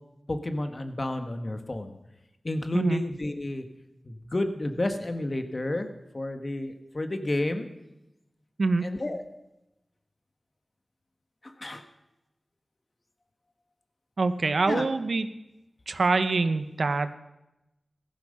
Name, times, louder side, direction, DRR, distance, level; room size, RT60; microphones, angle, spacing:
voice 1, 0.3-1.9 2.4-3.7 4.1-5.9 6.1-7.7 8.8-9.2 11.4-11.8 14.7-14.8, left 1 dB, 45° left, 7 dB, 1.7 m, -30 dB
voice 2, 14.2-15.3 15.9-17.1, right 3 dB, 80° right, 11 dB, 0.8 m, -25 dB
15.5 x 14.0 x 5.6 m, 0.94 s
cardioid pair, 50°, 0 cm